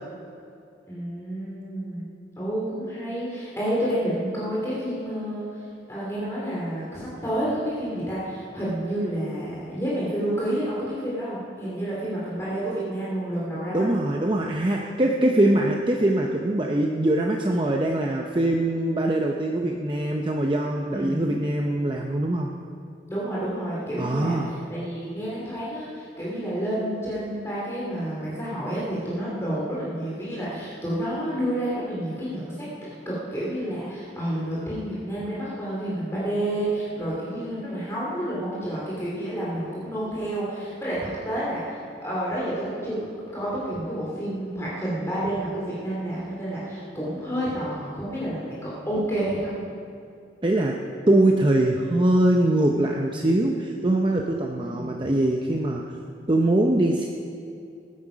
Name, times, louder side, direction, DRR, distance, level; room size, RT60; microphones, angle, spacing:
voice 1, 0.9-2.0 2.4-5.4 5.9-13.9 20.9-21.2 23.1-24.4 24.7-32.7 33.0-43.1 43.3-49.7 54.6-54.9, right 1 dB, 15° left, -7 dB, 2.9 m, -29 dB
voice 2, 13.7-22.5 24.0-24.5 50.4-50.8 51.1-55.8 56.3-57.1, right 1 dB, 30° right, 1 dB, 0.7 m, -22 dB
19.0 x 9.6 x 5.2 m, 2.5 s
head